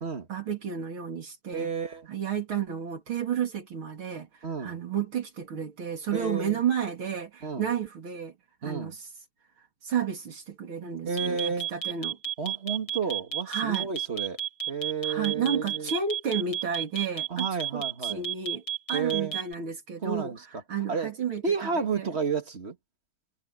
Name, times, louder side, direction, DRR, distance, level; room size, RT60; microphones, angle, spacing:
voice 1, 0.3-1.7 2.1-4.3 4.6-8.3 8.6-9.1 9.8-12.2 13.5-13.9 15.0-17.5 17.7-18.6 18.9-20.3 20.7-22.1, right 7 dB, 75° right, 3.7 m, -31 dB
voice 2, 1.5-2.1 4.4-4.8 6.1-6.6 7.4-7.7 8.6-8.9 11.1-11.7 12.4-14.4 14.7-15.9 17.3-18.2 18.9-19.4 20.0-20.6 20.9-21.1 21.4-22.8, right 5 dB, 30° right, 1.9 m, -31 dB
sound 1, 11.2-19.5, right 10 dB, 55° left, 6.4 m, -31 dB
omnidirectional pair, 2.3 m